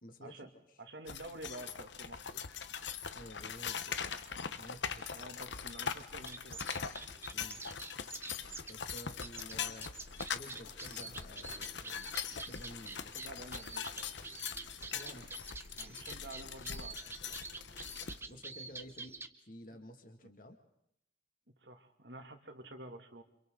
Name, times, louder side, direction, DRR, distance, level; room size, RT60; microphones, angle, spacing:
voice 1, 0.0-0.5 3.1-4.1 4.6-5.2 7.3-7.6 8.7-9.9 10.3-13.1 14.9-15.3 15.9-16.0 18.3-19.2 19.4-20.6, equal, 45° left, 5 dB, 2.3 m, -52 dB
voice 2, 0.8-2.4 5.1-6.9 9.5-9.6 13.1-14.1 15.8-17.4 19.7-19.8 20.2-20.3 21.6-23.2, right 1 dB, 65° right, 5 dB, 2.6 m, -50 dB
sound 1, 1.1-18.2, left 7 dB, 75° left, 1.1 m, -42 dB
sound 2, 6.1-19.3, right 3 dB, 15° right, 0.9 m, -48 dB
29.5 x 27.0 x 4.0 m, 0.77 s
head